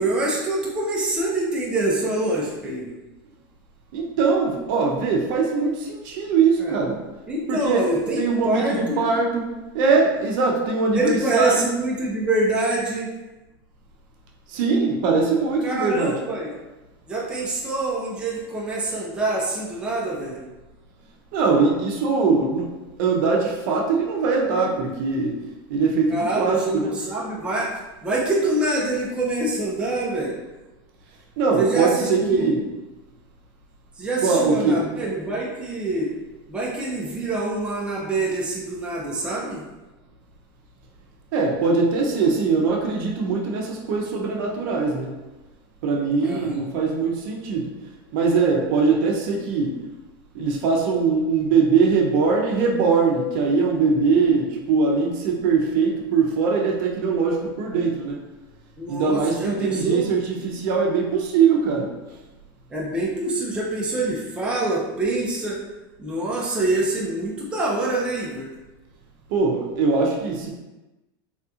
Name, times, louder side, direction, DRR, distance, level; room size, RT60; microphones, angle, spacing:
voice 1, 0.0-3.0 6.6-6.7 7.3-9.1 10.9-13.1 15.6-16.5 17.1-20.5 26.1-27.7 28.0-30.4 31.6-32.5 34.0-36.1 36.5-39.6 46.2-46.6 58.8-60.1 62.7-65.6 66.0-68.5, right 2 dB, 10° right, -4 dB, 0.5 m, -25 dB
voice 2, 3.9-7.0 7.5-7.9 8.2-11.6 14.5-16.2 21.3-25.4 25.7-26.9 31.4-32.6 34.2-34.8 41.3-45.1 45.8-47.7 48.1-49.8 50.3-58.2 58.9-61.9 69.3-70.5, right 4 dB, 60° right, 0 dB, 0.6 m, -21 dB
3.4 x 2.7 x 2.4 m, 1.1 s
supercardioid pair, 145°, 12 cm